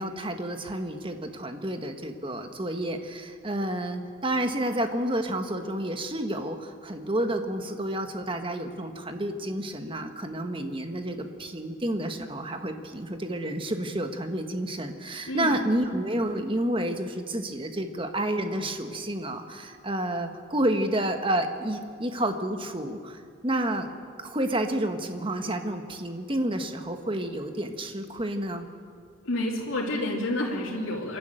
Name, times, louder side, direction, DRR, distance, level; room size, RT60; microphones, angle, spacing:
voice 1, 0.0-23.9 24.2-28.7, right 1 dB, 25° right, 6 dB, 1.4 m, -30 dB
voice 2, 15.3-15.6 29.2-31.2, left 1 dB, 80° left, -4 dB, 3.1 m, -29 dB
27.0 x 12.0 x 9.1 m, 2.3 s
head